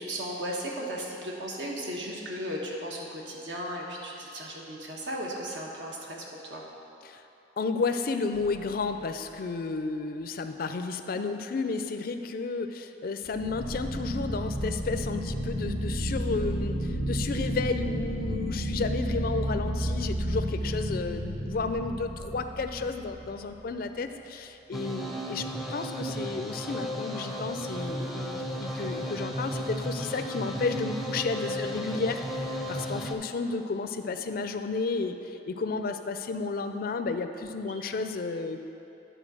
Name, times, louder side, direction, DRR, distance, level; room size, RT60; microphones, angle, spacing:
voice 1, 0.0-6.6 31.4-31.7, equal, 75° right, -2 dB, 1.3 m, -36 dB
voice 2, 7.6-38.6, left 4 dB, 50° left, 8 dB, 0.4 m, -32 dB
sound 1, 8.3-8.9 13.3-23.5, equal, 45° right, 1.4 m, -32 dB
sound 2, 24.7-33.1, equal, ahead, 0.5 m, -34 dB
11.0 x 4.0 x 6.2 m, 2.9 s
head